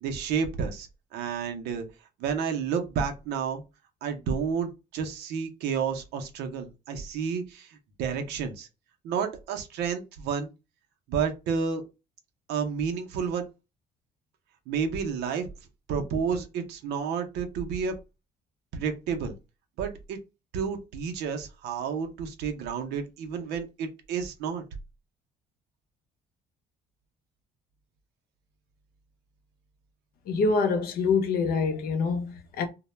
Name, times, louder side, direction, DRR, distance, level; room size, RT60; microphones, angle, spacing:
voice 1, 0.0-1.8 2.2-3.6 4.0-8.7 9.0-10.5 11.1-11.8 12.5-13.5 14.7-15.5 15.9-17.9 18.7-19.3 19.8-20.2 20.5-24.6, right 6 dB, 80° right, 0.5 m, -30 dB
voice 2, 30.3-32.7, left 4 dB, 65° left, 0.6 m, -25 dB
2.1 x 2.0 x 3.0 m
cardioid pair, 110°, 17 cm